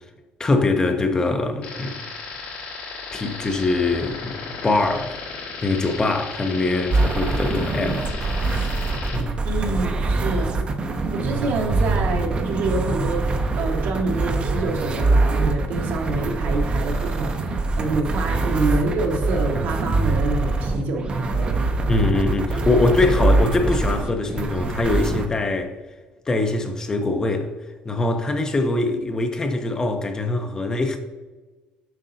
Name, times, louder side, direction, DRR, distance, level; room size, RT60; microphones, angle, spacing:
voice 1, 0.4-2.0 3.1-5.1 5.6-8.7 9.1-9.4 21.9-25.7 26.3-27.5 27.9-31.0, left 2 dB, 20° left, 0.6 m, -23 dB
sound 1, 1.6-9.2, left 4 dB, 75° left, 2.0 m, -35 dB
sound 2, 6.9-25.3, right 3 dB, 30° right, 0.7 m, -23 dB
voice 2, 9.4-10.6 11.1-13.3 13.6-21.5, right 3 dB, 70° right, 1.4 m, -27 dB
7.5 x 5.3 x 2.7 m
cardioid pair, 125°, 3 cm